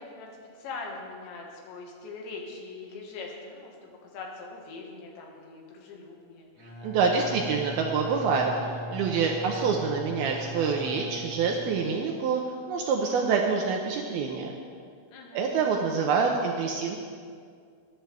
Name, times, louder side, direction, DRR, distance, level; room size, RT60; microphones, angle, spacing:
voice 1, 0.0-6.5 15.1-15.5, left 3 dB, 80° left, -1 dB, 3.9 m, -42 dB
Bowed string instrument, 6.6-12.1, right 1 dB, 55° left, 5.7 m, -39 dB
voice 2, 6.8-12.4 12.7-14.5 15.3-17.0, right 5 dB, 80° right, 1 dB, 2.3 m, -26 dB
21.0 x 10.5 x 3.4 m, 2.2 s
omnidirectional pair, 5.1 m